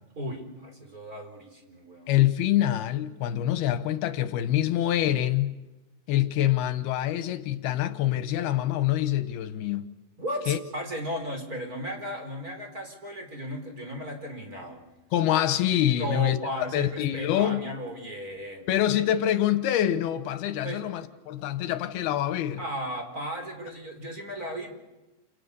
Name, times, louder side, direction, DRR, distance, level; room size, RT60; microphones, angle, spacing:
voice 1, 0.2-2.1 10.2-14.8 16.0-18.7 20.6-20.9 22.6-24.7, equal, 20° right, 4.7 m, -35 dB
voice 2, 2.1-5.6 6.1-9.9 10.5-10.6 15.1-17.6 18.7-22.6, left 12 dB, 90° left, 3.1 m, -25 dB
29.0 x 29.0 x 7.0 m
omnidirectional pair, 4.4 m